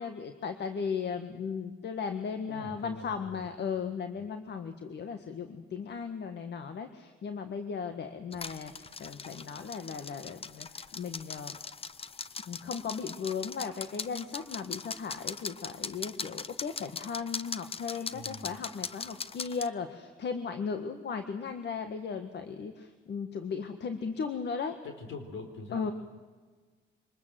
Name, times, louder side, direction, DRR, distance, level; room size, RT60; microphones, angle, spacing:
voice 1, 0.0-11.6 12.5-24.8 25.7-25.9, left 6 dB, 60° left, 8 dB, 1.6 m, -36 dB
voice 2, 2.5-3.4 18.1-18.6 24.8-25.9, left 3 dB, 75° left, 6 dB, 4.4 m, -43 dB
sound 1, 8.3-19.7, left 5 dB, 30° left, 0.7 m, -40 dB
25.0 x 20.5 x 7.7 m, 1.4 s
cardioid pair, 90°, 20 cm